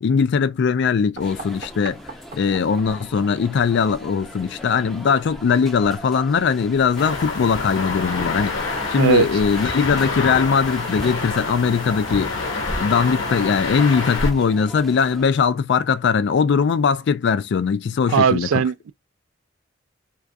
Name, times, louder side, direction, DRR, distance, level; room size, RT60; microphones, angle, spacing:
voice 1, 0.0-2.0 2.3-12.3 12.8-18.6, left 6 dB, 60° left, 0.4 m, -20 dB
sound 1, 1.1-6.7, right 3 dB, 45° right, 0.8 m, -44 dB
sound 2, 1.2-15.3, equal, ahead, 0.5 m, -37 dB
sound 3, 7.0-14.3, left 3 dB, 90° left, 0.9 m, -27 dB
voice 2, 18.1-18.9, right 6 dB, 85° right, 0.3 m, -18 dB
2.3 x 2.2 x 2.5 m
head